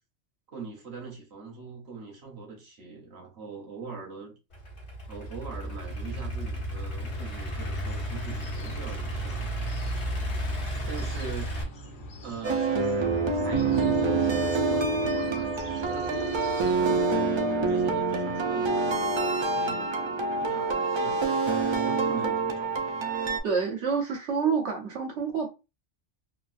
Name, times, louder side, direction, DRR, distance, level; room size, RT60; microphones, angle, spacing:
voice 1, 0.5-4.3 5.1-9.4 10.9-11.6 12.2-12.8 13.3-16.3 16.7-22.7, right 4 dB, 65° right, 1.2 m, -42 dB
Idling / Accelerating revving vroom, 4.5-11.6, equal, 70° left, 1.2 m, -33 dB
sound 1, 7.6-17.0, equal, 55° left, 0.8 m, -45 dB
sound 2, 12.4-23.4, right 3 dB, 50° right, 0.3 m, -26 dB
voice 2, 23.4-25.5, right 5 dB, 85° right, 1.1 m, -28 dB
3.5 x 2.4 x 2.4 m
omnidirectional pair, 1.2 m